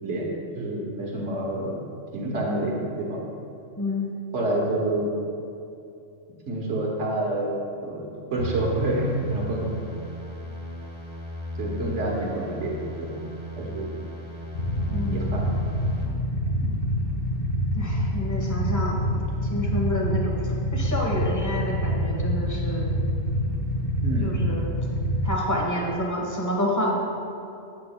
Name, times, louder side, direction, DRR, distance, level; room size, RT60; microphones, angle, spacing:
voice 1, 0.5-1.8 2.1-3.2 4.3-5.1 6.5-7.6 7.8-9.7 11.6-13.2 13.6-13.9 15.0-15.5 16.6-16.7 24.0-24.4, right 1 dB, 65° right, -2 dB, 1.4 m, -28 dB
voice 2, 3.8-4.1 14.9-15.4 17.7-19.2 19.5-22.9 24.2-24.7 25.2-27.0, equal, 15° left, -2 dB, 0.9 m, -28 dB
sound 1, 8.4-16.1, left 1 dB, 25° right, 0.8 m, -36 dB
Motorcycle / Idling, 14.5-25.3, equal, 50° left, 1.2 m, -26 dB
8.5 x 8.5 x 2.2 m, 2.6 s
omnidirectional pair, 1.3 m